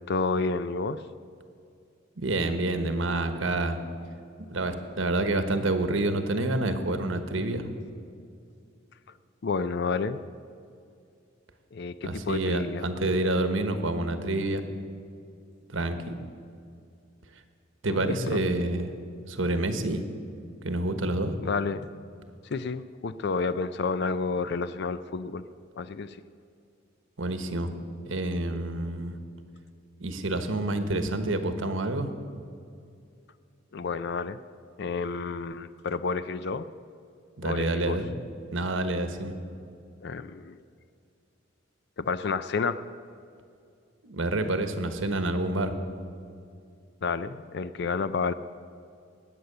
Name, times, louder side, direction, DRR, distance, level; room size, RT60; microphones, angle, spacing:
voice 1, 0.1-1.0 9.4-10.2 11.7-12.8 17.9-18.4 21.4-21.8 22.5-25.4 25.8-26.2 33.7-34.4 34.8-36.7 37.4-38.0 40.0-40.6 42.0-42.8 47.0-48.3, left 4 dB, 55° left, 13 dB, 0.4 m, -30 dB
voice 2, 2.2-3.8 4.5-7.7 12.0-14.6 15.7-16.0 17.8-18.9 19.3-20.0 20.6-21.3 27.2-27.7 28.0-29.1 30.0-32.1 37.4-38.1 38.5-39.3 44.0-45.7, right 2 dB, 80° right, 8 dB, 1.3 m, -28 dB
20.0 x 8.1 x 6.7 m, 2.4 s
head